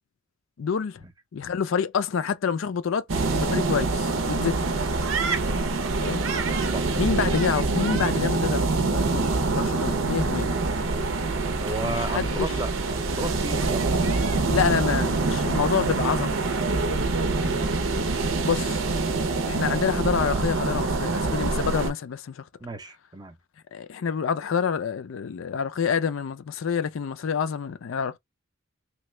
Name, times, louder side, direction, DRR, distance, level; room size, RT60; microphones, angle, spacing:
voice 1, 0.6-1.0 1.3-3.1 3.3-4.6 6.0-6.2 6.9-10.6 11.8-12.5 14.5-16.5 17.4-17.7 18.5-18.8 19.5-22.4 23.7-28.2, left 6 dB, 80° left, 0.4 m, -27 dB
sound 1, 3.1-21.9, right 3 dB, 85° right, 0.7 m, -25 dB
voice 2, 11.6-14.4 22.6-23.4, right 3 dB, 20° right, 0.6 m, -34 dB
3.0 x 2.3 x 3.2 m
head